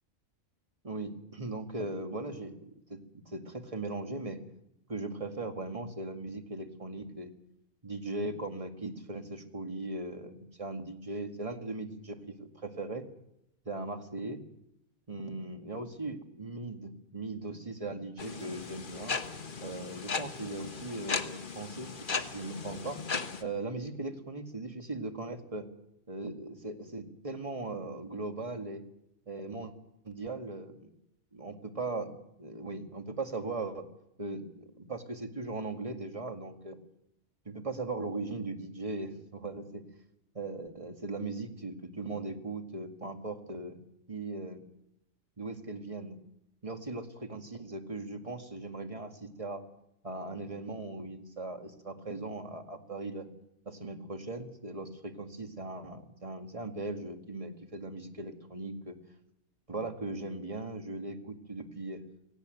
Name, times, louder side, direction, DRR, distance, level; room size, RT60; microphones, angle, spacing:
voice 1, 0.8-4.4 4.9-7.3 7.8-13.1 13.7-14.4 15.1-19.2 19.6-23.0 23.4-25.7 26.1-28.8 29.3-29.7 30.0-31.0 31.3-33.9 34.2-36.8 37.5-39.8 40.3-43.8 44.1-44.6 45.4-46.2 46.6-47.0 47.3-49.6 50.0-53.3 53.7-59.0 59.7-62.0, right 2 dB, 25° right, 6 dB, 2.2 m, -39 dB
sound 1, 18.2-23.4, left 5 dB, 40° left, 1.4 m, -37 dB
18.5 x 17.5 x 9.2 m, 0.82 s
omnidirectional pair, 1.3 m